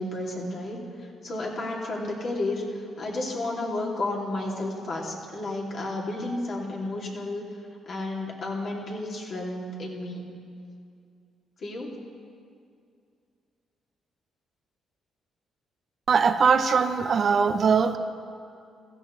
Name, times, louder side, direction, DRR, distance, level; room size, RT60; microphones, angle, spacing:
voice 1, 0.0-7.4 7.8-10.2 11.6-11.9, left 2 dB, 55° left, -3 dB, 2.7 m, -32 dB
voice 2, 16.1-18.0, right 5 dB, 50° right, 9 dB, 0.6 m, -21 dB
16.0 x 15.5 x 3.2 m, 2.4 s
cardioid pair, 90°, 0 cm